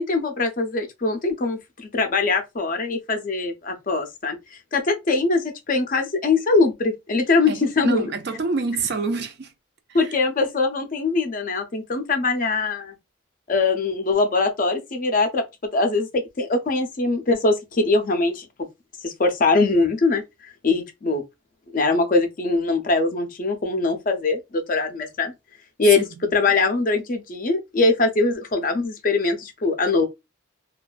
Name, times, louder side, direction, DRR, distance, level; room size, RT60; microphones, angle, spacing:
voice 1, 0.0-4.4 4.7-8.1 9.9-12.9 13.5-15.4 15.7-18.5 19.0-20.2 20.6-21.2 21.7-25.3 25.8-26.1 26.3-30.1, left 3 dB, 40° left, 0.5 m, -22 dB
voice 2, 7.5-9.5 9.9-10.2 25.9-26.2, right 4 dB, 50° right, 0.4 m, -27 dB
2.5 x 2.3 x 2.3 m
head